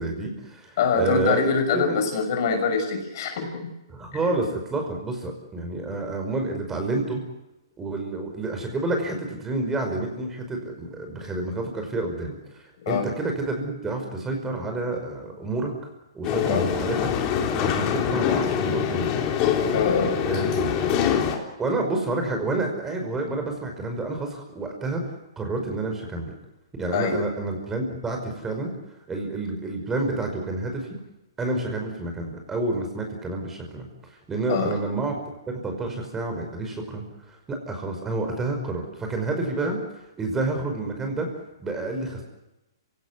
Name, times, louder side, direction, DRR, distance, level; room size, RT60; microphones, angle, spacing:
voice 1, 0.0-2.0 3.9-7.2 7.8-15.7 16.1-17.1 17.6-19.3 20.2-21.0 21.6-25.0 25.4-26.3 26.8-28.7 29.1-30.9 31.4-33.9 34.3-35.1 35.6-39.8 40.2-41.3 41.6-42.2, right 2 dB, 15° right, 3 dB, 5.4 m, -29 dB
voice 2, 0.8-3.7 12.9-13.0 16.5-16.7 19.7-20.2 26.9-27.2 34.5-34.8, left 5 dB, 50° left, 5 dB, 6.0 m, -24 dB
sound 1, 16.2-21.4, left 8 dB, 35° left, 3.4 m, -24 dB
27.0 x 17.0 x 9.6 m, 0.98 s
hypercardioid pair, 130°, 2 cm